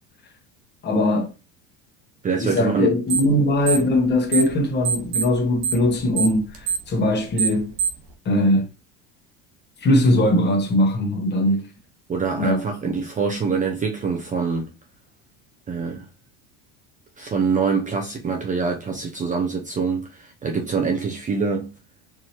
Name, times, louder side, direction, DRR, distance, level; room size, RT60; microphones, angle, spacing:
voice 1, 0.8-1.3 2.4-7.7 8.2-8.7 9.8-11.7 12.4-12.6, left 1 dB, 30° left, 1.1 m, -20 dB
voice 2, 2.2-2.9 3.3-3.4 12.1-14.7 15.7-16.1 17.2-21.7, right 5 dB, 20° right, 0.6 m, -25 dB
sound 1, 3.1-3.4 3.6-4.6 4.8-8.1, right 7 dB, 70° right, 1.2 m, -24 dB
4.6 x 2.8 x 2.9 m
cardioid pair, 135°, 36 cm